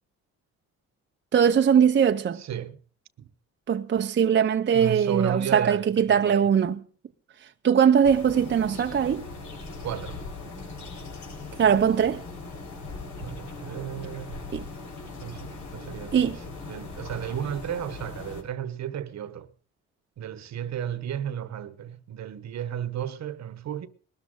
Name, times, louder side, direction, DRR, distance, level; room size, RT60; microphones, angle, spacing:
voice 1, 1.3-2.4 3.7-6.8 7.6-9.3 11.6-12.2 14.5-14.6 16.1-16.4, right 7 dB, 40° right, 0.8 m, -21 dB
voice 2, 2.4-2.8 3.2-3.3 4.7-6.5 9.8-10.2 13.2-14.4 15.2-19.5 20.2-23.9, right 9 dB, 65° right, 1.2 m, -34 dB
sound 1, 8.0-18.4, left 3 dB, 70° left, 4.8 m, -40 dB
21.0 x 13.0 x 3.8 m
cardioid pair, 90°, 30 cm